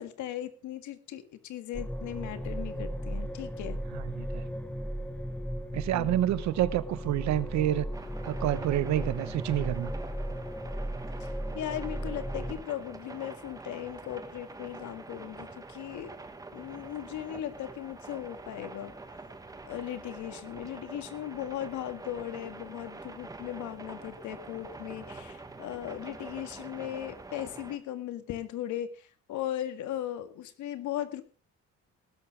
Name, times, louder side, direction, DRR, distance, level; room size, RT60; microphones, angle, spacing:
voice 1, 0.0-3.8 5.8-6.1 11.2-16.1 16.5-18.9 19.6-31.2, left 12 dB, 75° left, 1.9 m, -38 dB
sound 1, 1.7-12.5, equal, 5° left, 1.1 m, -36 dB
voice 2, 3.9-4.4 5.7-7.9 8.2-9.9, right 13 dB, 65° right, 1.1 m, -28 dB
sound 2, 7.9-27.8, right 3 dB, 10° right, 1.4 m, -45 dB
19.0 x 12.0 x 3.4 m
cardioid pair, 180°, 30 cm